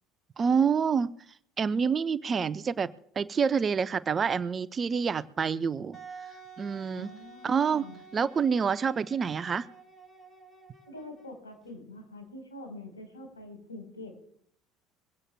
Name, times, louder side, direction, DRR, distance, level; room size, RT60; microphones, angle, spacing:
voice 1, 0.4-1.1 1.6-2.9 3.2-6.0 6.6-7.1 7.4-9.7, right 6 dB, 30° right, 15 dB, 0.6 m, -27 dB
Wind instrument woodwind instrument, 5.9-11.5, right 5 dB, 20° left, 2.4 m, -50 dB
voice 2, 7.0-7.9 10.9-14.3, left 1 dB, 80° left, 4 dB, 4.3 m, -45 dB
22.5 x 16.5 x 2.3 m, 0.64 s
figure-of-eight pair, 65°, 0 cm